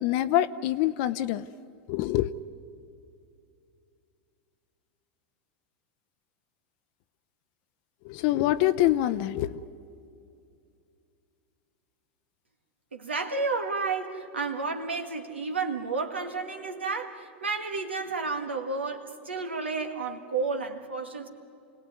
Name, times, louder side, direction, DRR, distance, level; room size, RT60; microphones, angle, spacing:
voice 1, 0.0-1.4 1.9-2.3 8.0-9.6, left 14 dB, 55° left, 11 dB, 0.6 m, -25 dB
voice 2, 12.9-21.3, right 4 dB, 85° right, 6 dB, 1.9 m, -31 dB
28.5 x 18.5 x 9.5 m, 2.5 s
figure-of-eight pair, 85°, 6 cm